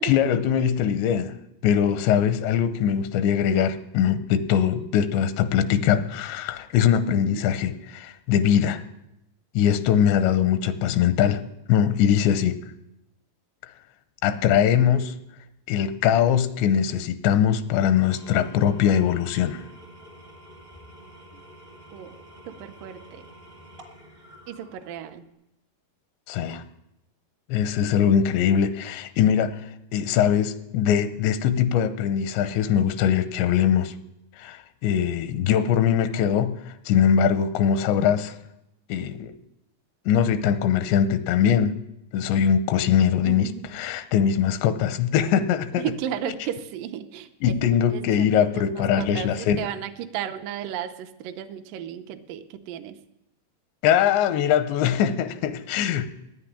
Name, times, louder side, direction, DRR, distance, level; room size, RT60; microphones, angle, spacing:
voice 1, 0.0-1.4 1.6-8.8 9.5-11.4 11.7-12.6 14.2-15.2 15.7-19.6 26.3-26.6 27.5-34.0 34.4-38.4 38.9-39.3 40.1-41.8 42.1-43.5 43.7-45.8 47.4-49.6 53.8-56.1, left 9 dB, 85° left, 11 dB, 3.0 m, -22 dB
voice 2, 7.1-7.5 21.3-21.4 21.9-22.2 22.5-23.2 24.5-25.3 43.2-43.8 45.7-47.6 47.9-53.0, right 10 dB, 80° right, 6 dB, 2.0 m, -34 dB
Engine / Tools, 17.8-25.3, equal, 50° right, 0.5 m, -48 dB
9.9 x 9.5 x 10.0 m, 0.86 s
omnidirectional pair, 5.0 m